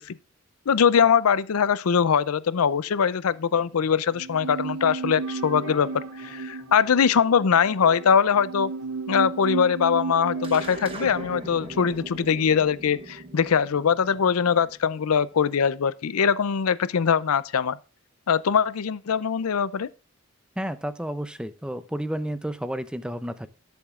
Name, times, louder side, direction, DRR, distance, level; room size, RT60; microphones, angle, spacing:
voice 1, 0.7-8.7 9.1-17.8 18.3-19.9, left 7 dB, 85° left, 0.5 m, -22 dB
sound 1, 2.8-13.1 13.3-14.7, left 2 dB, 35° left, 3.3 m, -52 dB
sound 2, 4.1-13.5 13.7-13.8, right 4 dB, 80° right, 0.5 m, -35 dB
sound 3, 10.4-15.1, right 2 dB, 25° right, 1.1 m, -41 dB
voice 2, 20.6-23.5, equal, 5° right, 0.5 m, -31 dB
20.5 x 7.1 x 2.4 m
head